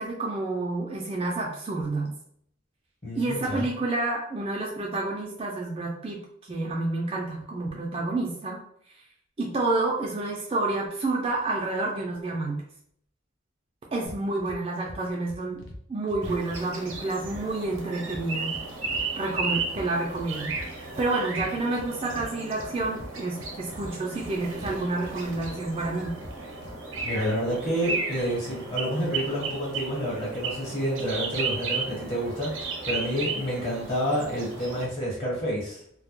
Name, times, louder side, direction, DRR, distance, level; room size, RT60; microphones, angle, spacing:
voice 1, 0.0-2.1 3.1-6.2 6.5-8.6 9.4-12.6 13.9-15.6 15.9-18.5 19.2-26.2, right 2 dB, 30° right, -2 dB, 0.3 m, -29 dB
voice 2, 3.0-3.7 27.0-35.8, equal, 30° left, -5 dB, 1.0 m, -29 dB
sound 1, 14.1-14.6 14.9-15.8 16.1-17.8 18.1-19.0 19.3-21.1 21.3-22.3 22.6-24.3 24.6-25.5 25.8-27.0, left 1 dB, 65° left, 0.6 m, -43 dB
sound 2, 16.2-34.9, right 4 dB, 85° right, 0.5 m, -34 dB
2.1 x 2.1 x 2.9 m, 0.66 s
head